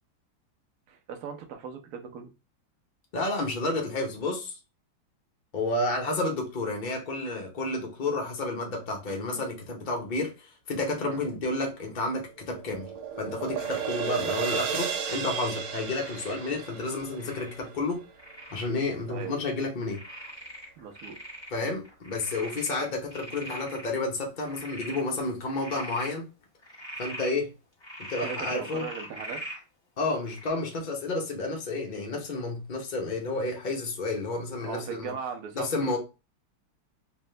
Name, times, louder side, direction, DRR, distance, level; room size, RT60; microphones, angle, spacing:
voice 1, 0.9-2.3 11.0-11.2 19.1-19.4 20.8-21.2 28.2-29.4 34.6-36.0, right 6 dB, 60° right, 1.0 m, -38 dB
voice 2, 3.1-4.6 5.5-12.9 13.2-18.0 18.5-20.0 21.5-26.3 27.0-27.5 28.0-28.9 30.0-35.1 35.6-36.0, left 2 dB, 75° left, 0.4 m, -31 dB
sound 1, 12.0-18.3, right 7 dB, 85° right, 1.6 m, -34 dB
Frog, 13.6-13.9 14.8-15.2 16.0-16.4 17.2-17.7 18.2-18.7 19.2-19.3 19.9-21.5 21.8-23.9 24.4-25.0 25.5-26.1 26.6-27.3 27.8-29.6 30.3-30.5, right 1 dB, 15° left, 1.2 m, -41 dB
3.5 x 3.1 x 3.2 m
omnidirectional pair, 2.2 m